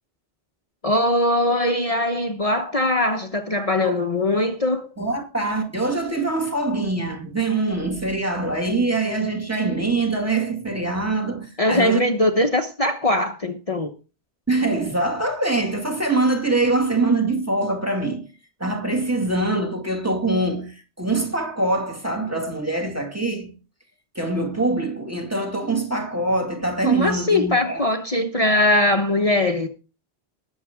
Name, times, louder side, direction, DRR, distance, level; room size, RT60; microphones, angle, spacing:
voice 1, 0.8-4.9 11.6-13.9 26.8-29.7, left 1 dB, 35° left, 1.1 m, -21 dB
voice 2, 5.0-12.0 14.5-18.3 18.6-23.5 24.2-27.8, right 2 dB, 15° right, 2.1 m, -23 dB
20.5 x 7.4 x 3.6 m
omnidirectional pair, 1.1 m